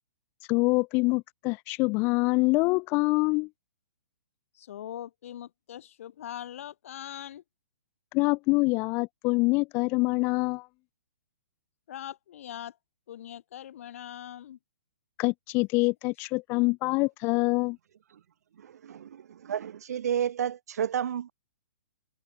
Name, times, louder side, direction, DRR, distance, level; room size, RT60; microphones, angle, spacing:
voice 1, 0.4-3.5 8.1-10.7 15.2-17.8, left 27 dB, 20° left, 0.5 m, -25 dB
voice 2, 4.5-7.4 11.9-12.8 13.1-14.6, left 11 dB, 55° left, 5.6 m, -41 dB
voice 3, 18.6-21.3, right 9 dB, 70° right, 0.5 m, -31 dB
hypercardioid pair, 160°, 9 cm